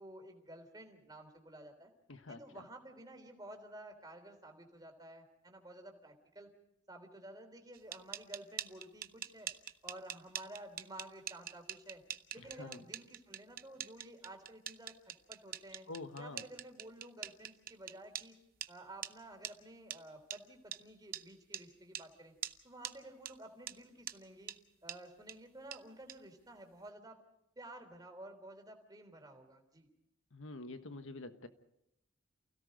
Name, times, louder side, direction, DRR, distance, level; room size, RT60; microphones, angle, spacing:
voice 1, 0.0-1.9 2.3-6.5 6.9-9.5 9.8-12.0 12.3-15.9 16.2-18.4 18.7-22.3 22.6-24.5 24.8-27.2 27.6-29.9, right 1 dB, 20° right, 3 dB, 3.4 m, -52 dB
voice 2, 2.1-2.6 12.4-12.8 15.9-16.4 30.3-31.5, left 2 dB, 90° left, 9 dB, 1.4 m, -47 dB
sound 1, 7.7-18.3 18.6-18.7 19.0-19.1 19.4-19.5 19.9-20.0 20.3-20.4 20.7-20.8 21.1-21.2 21.5-21.6 21.9-22.1 22.4-22.6 22.8-22.9 23.3-23.4 23.7-23.8 24.1-24.2 24.5-24.6 24.9-25.0 25.3-25.4 25.7-25.8 26.1-26.2, right 10 dB, 45° right, 0.8 m, -43 dB
28.5 x 17.0 x 5.3 m, 0.83 s
head